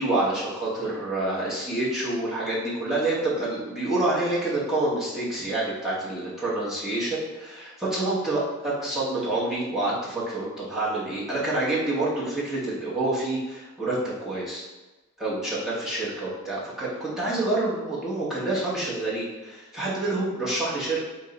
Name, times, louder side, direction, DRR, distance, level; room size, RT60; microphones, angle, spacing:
voice 1, 0.0-14.6 15.2-21.0, right 2 dB, ahead, -9 dB, 1.1 m, -27 dB
3.5 x 3.1 x 3.8 m, 1.2 s
head